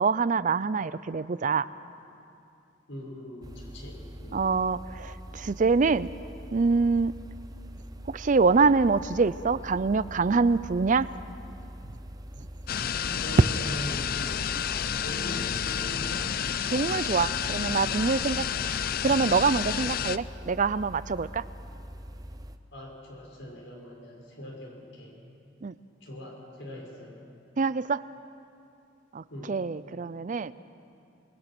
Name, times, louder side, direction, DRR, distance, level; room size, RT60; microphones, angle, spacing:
voice 1, 0.0-1.7 4.3-6.1 6.5-7.2 8.1-11.1 12.4-12.5 16.7-18.5 18.8-21.4 25.6-25.8 27.6-28.1 29.1-30.5, right 4 dB, 45° right, 16 dB, 0.5 m, -25 dB
voice 2, 2.9-4.4 13.1-14.6 15.0-16.3 22.7-25.2 26.0-27.2 29.3-29.6, left 1 dB, 75° left, -1 dB, 6.0 m, -41 dB
sound 1, 3.4-22.6, equal, 20° right, 0.8 m, -43 dB
sound 2, 12.7-20.2, left 8 dB, 50° left, 0.5 m, -30 dB
27.5 x 22.0 x 6.1 m, 2.6 s
head